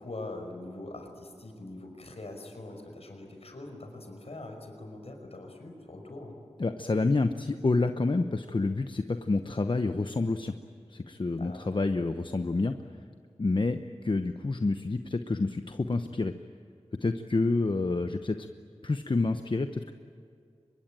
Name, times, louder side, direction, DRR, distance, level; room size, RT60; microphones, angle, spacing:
voice 1, 0.0-6.3 11.2-11.6, left 2 dB, 70° left, 3 dB, 5.3 m, -43 dB
voice 2, 6.6-10.5 10.9-12.7 13.4-13.8 14.0-16.3 17.0-18.5 18.8-19.9, left 3 dB, 50° left, 8 dB, 0.9 m, -28 dB
25.0 x 22.0 x 9.1 m, 2.4 s
wide cardioid pair, 50°, 11 cm